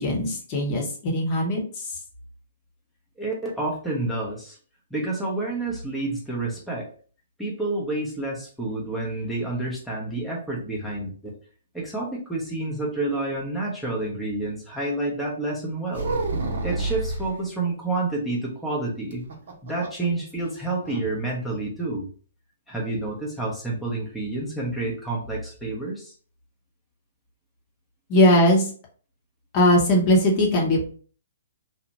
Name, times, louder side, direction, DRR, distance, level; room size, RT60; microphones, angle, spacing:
voice 1, 0.0-1.9 28.1-28.6 29.5-30.8, left 1 dB, 35° left, -1 dB, 0.8 m, -20 dB
voice 2, 3.2-4.6 4.9-6.9 7.4-11.1 11.7-16.2 16.6-19.2 19.6-22.1 22.7-26.1, right 2 dB, ahead, -5 dB, 0.7 m, -29 dB
sound 1, 15.9-17.4 19.1-20.1 20.4-20.5 20.8-21.1, right 3 dB, 60° right, 0.7 m, -29 dB
2.8 x 2.1 x 2.8 m, 0.42 s
figure-of-eight pair, 125°, 0 cm